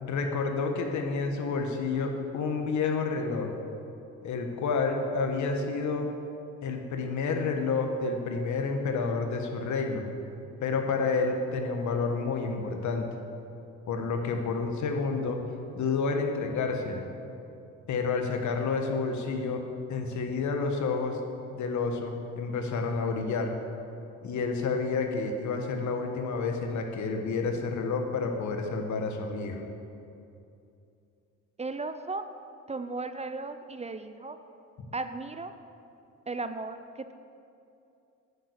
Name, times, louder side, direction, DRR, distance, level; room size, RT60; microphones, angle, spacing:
voice 1, 0.0-3.5 4.2-6.1 6.6-10.0 10.6-13.1 13.9-15.4 15.7-17.1 17.9-19.6 19.9-21.2 21.5-23.5 24.2-29.6, left 4 dB, 70° left, 4 dB, 1.3 m, -29 dB
voice 2, 31.6-32.3 32.7-34.4 34.9-35.5 36.3-37.1, right 3 dB, 20° right, 10 dB, 0.4 m, -35 dB
9.1 x 6.9 x 6.5 m, 2.7 s
cardioid pair, 90°, 30 cm